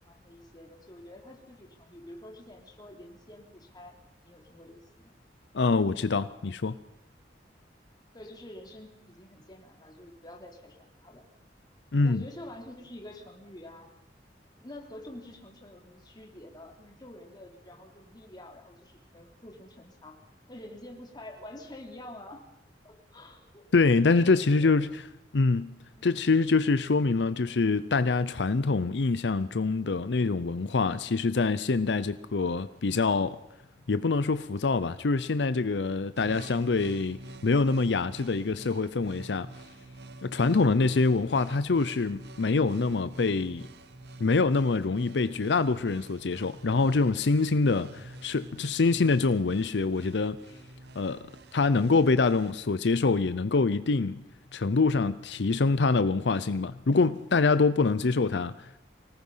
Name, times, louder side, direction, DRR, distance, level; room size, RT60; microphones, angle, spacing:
voice 1, 0.1-4.0 4.2-5.1 8.1-11.3 12.0-13.9 14.6-20.2 20.5-22.4 22.8-23.7 24.2-24.8 26.0-26.2, left 1 dB, 25° left, 3.3 m, -47 dB
voice 2, 5.5-6.8 11.9-12.2 23.7-25.0 25.3-25.7 26.0-33.4 33.9-39.5 40.2-43.6 44.2-50.4 51.0-51.3 51.5-54.2 54.5-58.8, left 3 dB, 75° left, 0.6 m, -25 dB
sound 1, 36.2-52.5, right 2 dB, 70° right, 1.0 m, -47 dB
25.0 x 18.5 x 5.6 m
head